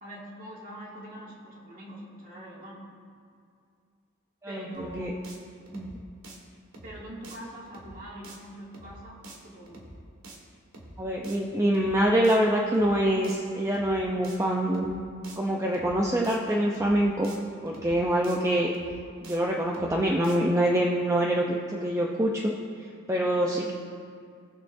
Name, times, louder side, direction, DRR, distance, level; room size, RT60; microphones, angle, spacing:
voice 1, 0.0-2.8 4.5-5.2 6.8-9.8 18.1-18.2 23.3-23.6, right 1 dB, 40° right, -5 dB, 2.3 m, -43 dB
voice 2, 4.4-5.1 5.7-5.9 11.0-15.0 15.4-17.3 17.6-18.7 19.2-22.5 22.8-23.7, right 1 dB, 15° right, -2 dB, 0.6 m, -25 dB
sound 1, 4.7-5.0 5.2-5.4 5.7-6.0 6.2-6.4 6.7-7.0 7.2-7.4 7.7-8.0 8.2-8.4 8.7-9.0 9.2-9.4 9.7-10.0 10.2-10.4 10.7-11.0 11.2-11.4 11.7-12.0 12.2-12.4 12.7-13.0 13.2-13.4 13.7-14.0 14.2-14.4 14.7-15.0 15.2-15.4 15.7-16.0 16.2-16.4 16.7-17.0 17.2-17.4 17.7-18.0 18.2-18.4 18.7-19.0 19.2-19.4 19.7-20.0 20.2-20.4, right 2 dB, 80° right, 1.7 m, -46 dB
18.5 x 6.8 x 2.6 m, 2.3 s
head